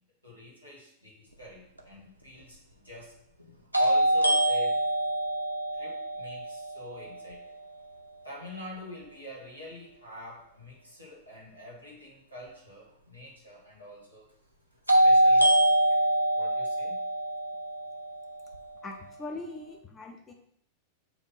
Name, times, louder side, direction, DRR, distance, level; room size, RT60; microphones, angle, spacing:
voice 1, 0.2-3.1 3.8-4.8 5.7-7.5 8.2-14.3 14.9-15.6 16.3-17.0, equal, 85° left, -4 dB, 2.0 m, -46 dB
sound 1, 1.8-1.9 3.7-7.6 14.9-18.9, right 1 dB, 90° right, 0.7 m, -25 dB
voice 2, 18.8-20.3, left 2 dB, 20° left, 4 dB, 0.7 m, -41 dB
7.1 x 2.6 x 5.6 m, 0.69 s
figure-of-eight pair, 90°, 0 cm